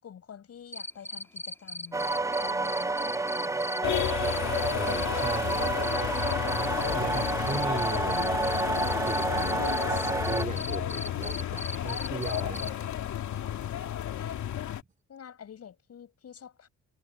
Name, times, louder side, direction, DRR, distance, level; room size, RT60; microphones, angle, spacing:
voice 1, 0.0-2.1 2.4-4.1 14.1-14.5 15.1-16.7, left 8 dB, 55° left, 7.1 m, -48 dB
Cricket, 0.7-12.7, left 1 dB, 10° left, 2.9 m, -37 dB
sound 1, 1.9-10.4, right 2 dB, 10° right, 0.6 m, -30 dB
sound 2, 3.8-14.8, left 11 dB, 75° left, 2.8 m, -32 dB
voice 2, 4.7-5.8 6.6-6.7 6.9-8.4 9.0-12.9, right 4 dB, 25° right, 3.6 m, -37 dB
cardioid pair, 90°, 30 cm